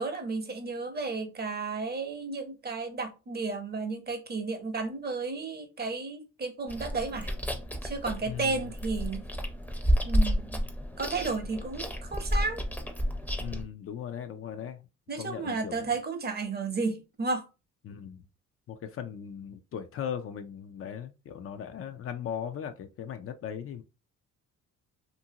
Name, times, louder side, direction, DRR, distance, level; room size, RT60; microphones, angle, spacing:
voice 1, 0.0-7.3 7.8-9.2 10.0-10.6 11.0-12.6 15.1-17.5, right 4 dB, 35° right, 0.7 m, -33 dB
Chewing mastication, 6.7-13.6, equal, 5° left, 0.6 m, -31 dB
voice 2, 8.3-8.7 13.4-14.9 15.2-15.9 17.8-18.2 18.7-23.8, left 8 dB, 50° left, 0.4 m, -38 dB
2.6 x 2.6 x 2.7 m
cardioid pair, 90°, 30 cm